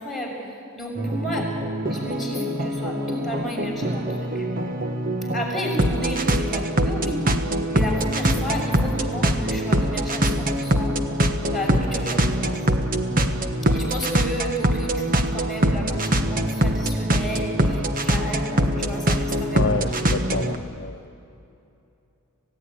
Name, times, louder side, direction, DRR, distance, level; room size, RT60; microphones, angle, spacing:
voice 1, 0.0-1.5 1.9-4.5 5.3-7.2 7.7-11.0 11.5-12.7 13.7-20.5, equal, ahead, -3 dB, 6.4 m, -32 dB
sound 1, 1.0-20.6, right 1 dB, 40° right, 1.4 m, -23 dB
voice 2, 19.5-21.0, left 4 dB, 50° left, 8 dB, 0.7 m, -28 dB
27.5 x 16.5 x 10.0 m, 2.8 s
head